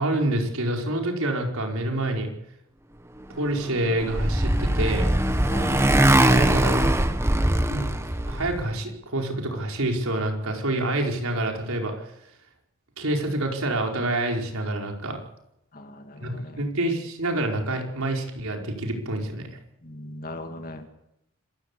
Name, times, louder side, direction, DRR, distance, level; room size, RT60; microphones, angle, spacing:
voice 1, 0.0-2.3 3.3-5.1 6.3-6.9 7.7-7.9 8.2-12.1 13.0-15.2 16.2-19.6, right 1 dB, 80° right, 2 dB, 5.1 m, -27 dB
Motorcycle, 3.6-8.6, right 1 dB, 10° right, 1.1 m, -21 dB
voice 2, 5.5-5.9 15.7-16.7 19.8-20.9, left 1 dB, 40° left, 6 dB, 2.5 m, -38 dB
26.5 x 15.5 x 8.4 m, 0.82 s
head